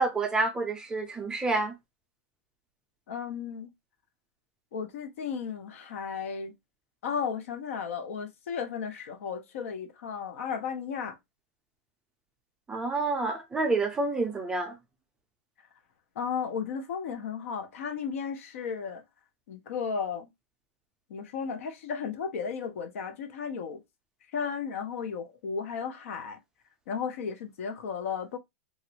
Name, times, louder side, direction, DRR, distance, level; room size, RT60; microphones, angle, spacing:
voice 1, 0.0-1.7 12.7-14.8, right 3 dB, 10° right, 0.4 m, -28 dB
voice 2, 3.1-3.7 4.7-6.5 7.0-11.2 16.2-19.0 19.5-20.3 21.1-23.8 24.3-26.4 26.9-28.4, left 6 dB, 70° left, 0.7 m, -34 dB
3.0 x 2.5 x 2.8 m
supercardioid pair, 150°, 8 cm